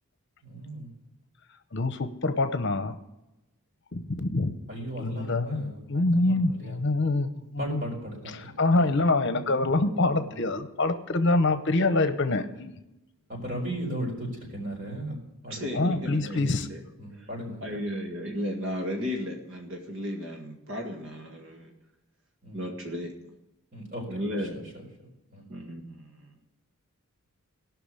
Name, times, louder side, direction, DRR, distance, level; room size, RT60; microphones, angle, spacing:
voice 1, 0.4-0.9 4.7-6.8 7.6-8.3 13.3-15.1 15.4-16.0 16.3-16.5 17.0-17.9 22.4-22.6 23.7-24.2 24.5-25.4, equal, 40° right, 0 dB, 4.5 m, -37 dB
voice 2, 1.7-3.0 3.9-4.6 5.0-7.8 8.3-12.7 15.7-16.7, left 2 dB, 55° left, 10 dB, 0.9 m, -25 dB
voice 3, 9.3-10.4 15.5-16.8 17.1-17.3 17.6-21.7 22.5-23.1 24.1-24.6 25.5-26.3, equal, 60° right, 1 dB, 1.8 m, -35 dB
18.0 x 6.0 x 8.3 m, 0.94 s
head